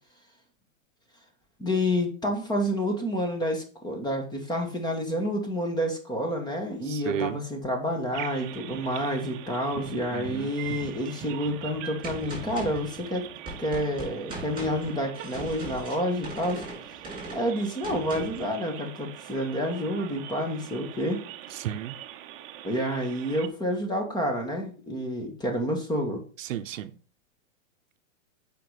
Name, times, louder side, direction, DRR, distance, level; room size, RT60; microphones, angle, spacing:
voice 1, 1.6-13.3 13.6-16.6 17.3-21.2 22.6-26.2, equal, 10° left, 4 dB, 1.8 m, -29 dB
voice 2, 6.8-7.4 10.1-10.5 21.5-22.0 26.4-26.9, right 10 dB, 70° right, 11 dB, 0.9 m, -33 dB
sound 1, 8.1-23.5, right 11 dB, 35° right, 1.0 m, -42 dB
Gunshot gunfire, 12.0-18.5, right 2 dB, 10° right, 4.5 m, -39 dB
7.6 x 5.2 x 5.0 m, 0.40 s
hypercardioid pair, 140°, 40 cm